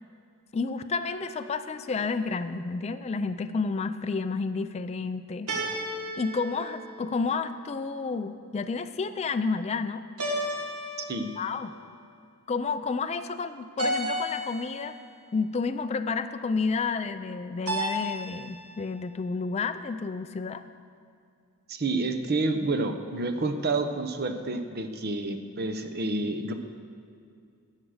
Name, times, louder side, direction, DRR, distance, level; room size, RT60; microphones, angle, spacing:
voice 1, 0.5-5.5 6.2-10.0 11.4-11.7 12.5-15.0 15.3-20.6, left 4 dB, 30° left, 9 dB, 0.3 m, -30 dB
sound 1, 1.1-1.7 5.5-7.5 10.2-11.6 13.8-15.0 17.7-18.6, equal, 75° right, 1.7 m, -33 dB
voice 2, 21.7-26.5, right 2 dB, 45° right, 7 dB, 0.8 m, -29 dB
11.5 x 7.5 x 6.4 m, 2.3 s
head